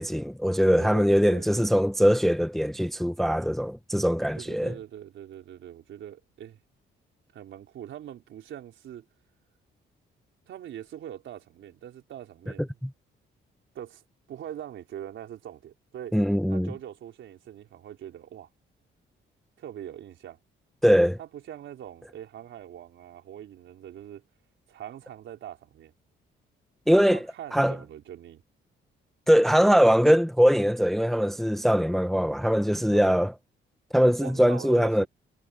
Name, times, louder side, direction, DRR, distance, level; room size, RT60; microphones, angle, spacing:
voice 1, 0.0-4.7 12.8-12.9 16.1-16.7 20.8-21.2 26.9-27.2 27.5-27.8 29.3-33.3 33.9-35.1, equal, ahead, 0.7 m, -22 dB
voice 2, 0.7-1.9 4.3-6.6 7.3-9.0 10.5-12.7 13.7-14.0 14.3-16.2 16.5-18.5 19.6-20.4 21.2-24.2 24.7-25.9 27.1-28.4 32.9-33.2 34.0-35.1, right 10 dB, 75° right, 4.2 m, -42 dB
cardioid pair, 90°, 20 cm